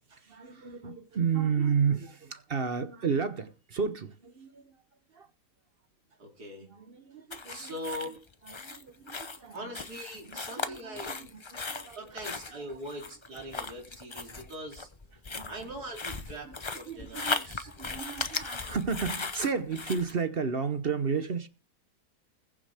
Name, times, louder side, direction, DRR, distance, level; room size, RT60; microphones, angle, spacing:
voice 1, 0.1-4.8 5.1-5.3 6.6-7.7 8.5-9.7 10.3-12.2 12.5-12.6 15.3-15.5 16.3-16.6 16.9-21.5, right 6 dB, 45° right, 0.9 m, -33 dB
voice 2, 6.2-6.7 7.5-8.2 9.5-11.1 12.0-14.9 15.5-17.7, equal, 85° right, 3.6 m, -41 dB
sound 1, 7.3-20.1, left 4 dB, 30° left, 0.5 m, -37 dB
21.0 x 7.3 x 3.4 m
omnidirectional pair, 1.6 m